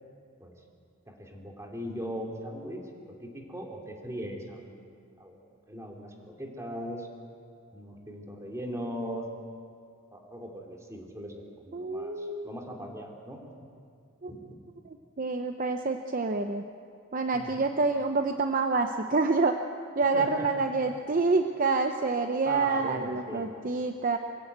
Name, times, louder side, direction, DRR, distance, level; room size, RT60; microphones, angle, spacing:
voice 1, 1.1-4.9 5.2-5.4 5.7-7.1 7.7-9.3 10.1-11.3 11.6-13.4 14.3-14.4 17.3-17.7 20.1-20.5 22.4-23.5, equal, 15° right, 1 dB, 2.8 m, -39 dB
voice 2, 11.7-12.5 14.2-14.3 14.9-16.6 17.1-19.6 19.9-24.2, right 3 dB, 45° right, 6 dB, 0.7 m, -27 dB
23.5 x 15.5 x 8.1 m, 2.4 s
head